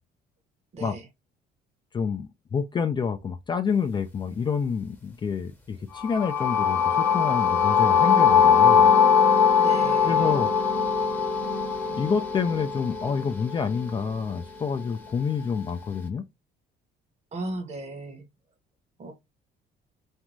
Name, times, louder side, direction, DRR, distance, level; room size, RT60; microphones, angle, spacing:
voice 1, 0.7-1.1 9.6-10.3 17.3-18.2 19.0-19.1, right 2 dB, 40° right, 0.9 m, -36 dB
voice 2, 1.9-8.9 10.0-10.5 11.9-16.3, left 6 dB, 25° left, 0.4 m, -28 dB
sound 1, 5.9-13.9, left 6 dB, 10° left, 0.8 m, -21 dB
2.6 x 2.2 x 3.0 m
cardioid pair, 110°, 17 cm